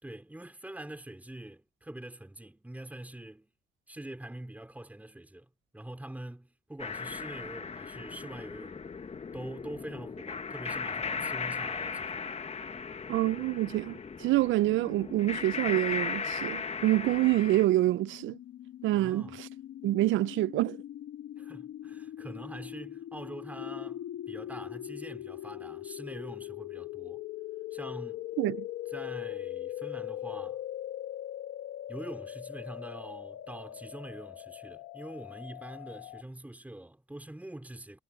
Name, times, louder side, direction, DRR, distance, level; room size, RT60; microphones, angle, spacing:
voice 1, 0.0-3.5 3.9-8.9 9.3-12.3 18.9-19.4 21.4-24.0 24.3-27.2 27.7-28.3 28.9-30.6 31.9-38.0, right 1 dB, 10° right, 3.4 m, -44 dB
sound 1, 6.8-17.7, left 5 dB, 30° left, 1.3 m, -37 dB
voice 2, 13.1-18.4 18.8-19.5 19.8-20.8 28.4-28.6, right 16 dB, 75° right, 0.4 m, -27 dB
sound 2, 17.6-36.2, left 12 dB, 80° left, 1.9 m, -41 dB
cardioid pair, 90°, 20 cm